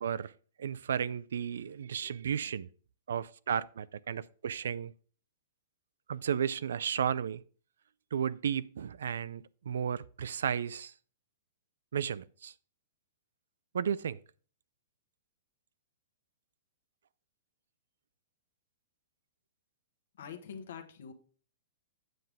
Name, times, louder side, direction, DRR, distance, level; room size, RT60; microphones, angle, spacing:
voice 1, 0.0-0.3 0.6-2.7 3.1-4.9 6.1-7.4 8.1-10.9 11.9-12.5 13.7-14.2, right 8 dB, 85° right, 0.4 m, -33 dB
voice 2, 20.2-21.1, left 7 dB, 60° left, 1.3 m, -44 dB
7.7 x 7.6 x 3.4 m
hypercardioid pair, 175°, 0 cm